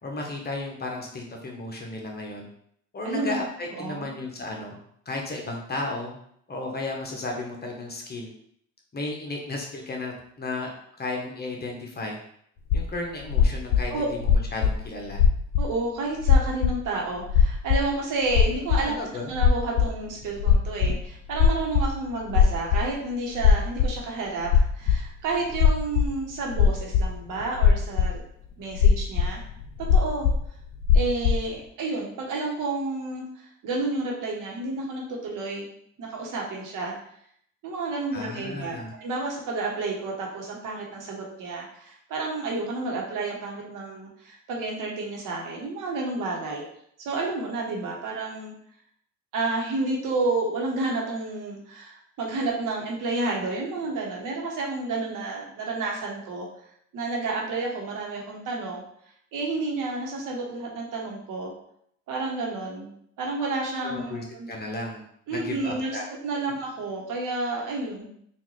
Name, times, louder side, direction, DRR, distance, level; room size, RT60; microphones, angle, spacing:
voice 1, 0.0-2.5 2.9-4.8 5.1-6.2 6.5-8.3 8.9-10.7 11.0-12.2 12.7-15.2 18.8-19.3 38.1-38.9 63.8-65.0 65.3-66.1, left 2 dB, 30° left, 0 dB, 0.9 m, -34 dB
voice 2, 3.0-3.4 3.8-4.1 13.9-14.1 15.6-18.9 19.3-28.2 28.6-29.4 29.9-30.3 30.9-35.7 36.0-36.9 37.6-46.6 47.0-48.5 49.3-56.5 56.9-58.8 59.3-61.5 62.1-62.9 63.2-64.5 65.3-66.0 66.2-68.2, right 3 dB, 65° right, -1 dB, 1.1 m, -30 dB
sound 1, 12.7-12.8 13.3-14.7 15.1-15.7 16.2-16.8 17.2-17.9 18.3-18.8 19.3-20.1 20.3-21.0 21.3-22.9 23.4-24.0 24.4-25.0 25.5-26.2 26.5-27.1 27.4-28.2 28.7-30.5 30.7-31.4, left 6 dB, 65° left, 0.6 m, -19 dB
3.7 x 2.5 x 3.1 m, 0.68 s
supercardioid pair, 80°, 34 cm